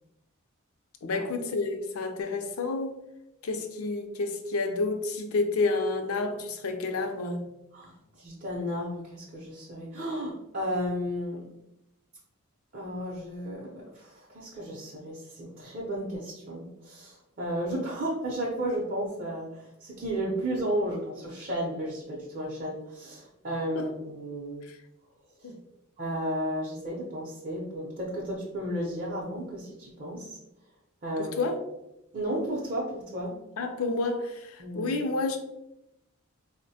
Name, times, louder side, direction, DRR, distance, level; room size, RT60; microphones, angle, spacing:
voice 1, 1.0-3.0 3.4-7.5 23.7-23.9 24.6-24.8 25.4-25.6 31.2-31.6 33.6-35.4, left 3 dB, 75° left, 6 dB, 0.5 m, -30 dB
voice 2, 7.7-11.4 12.7-24.6 25.4-25.5 26.0-30.4 31.0-31.3 32.1-33.4 34.6-34.9, right 1 dB, 40° right, -4 dB, 0.6 m, -33 dB
4.0 x 2.1 x 2.7 m, 0.87 s
head